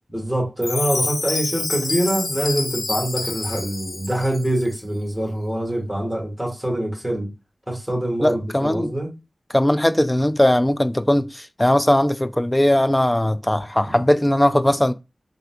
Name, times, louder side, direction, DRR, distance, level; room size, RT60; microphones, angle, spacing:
voice 1, 0.1-7.3 7.7-9.1 13.8-13.9, right 1 dB, 5° right, 1.8 m, -24 dB
Chime, 0.6-4.6, left 3 dB, 80° left, 0.5 m, -27 dB
voice 2, 8.2-8.9 9.5-14.9, left 1 dB, 20° left, 0.3 m, -19 dB
3.8 x 2.5 x 2.3 m
cardioid pair, 45°, 0 cm